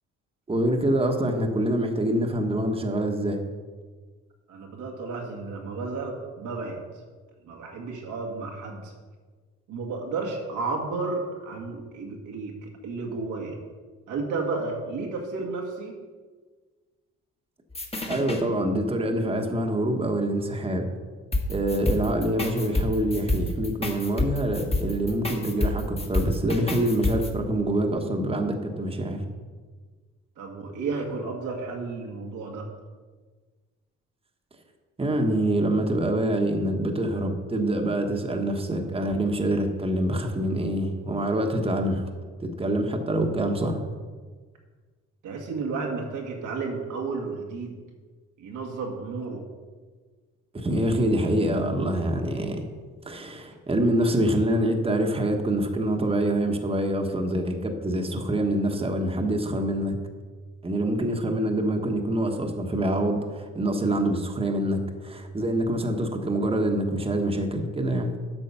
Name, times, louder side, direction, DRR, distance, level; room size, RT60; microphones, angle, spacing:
voice 1, 0.5-3.4 18.1-20.9 21.5-29.2 35.0-42.1 42.4-43.8 50.5-52.6 53.0-59.9 60.6-68.1, right 1 dB, 20° right, 3 dB, 1.2 m, -25 dB
voice 2, 4.5-6.8 7.4-8.9 9.7-13.6 14.1-15.9 30.4-32.7 45.2-47.7 48.4-49.4, right 3 dB, 85° right, 1 dB, 1.8 m, -32 dB
sound 1, 17.7-18.4 21.3-27.3, left 2 dB, 20° left, 1.4 m, -28 dB
8.9 x 6.2 x 5.6 m, 1.4 s
cardioid pair, 90°, 30 cm